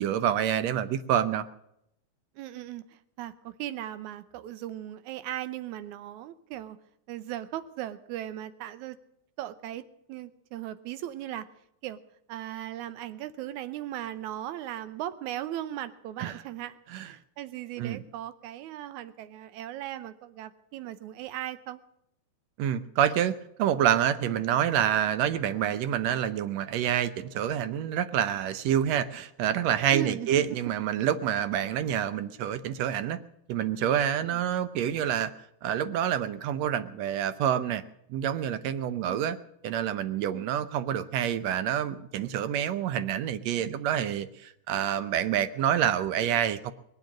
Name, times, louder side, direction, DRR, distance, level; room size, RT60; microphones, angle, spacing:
voice 1, 0.0-1.5 16.2-16.4 16.9-17.1 17.8-18.0 22.6-33.2 33.5-35.3 35.6-37.8 38.1-39.4 39.6-46.7, right 10 dB, 75° right, 13 dB, 1.9 m, -27 dB
voice 2, 2.4-6.8 7.1-9.0 9.4-9.8 10.1-11.5 11.8-12.0 12.3-16.8 17.0-21.8 24.3-24.4 29.9-30.6 34.3-34.4 39.0-39.3 40.3-40.5, right 12 dB, 90° right, 14 dB, 2.2 m, -38 dB
21.0 x 7.9 x 7.4 m, 0.79 s
omnidirectional pair, 3.3 m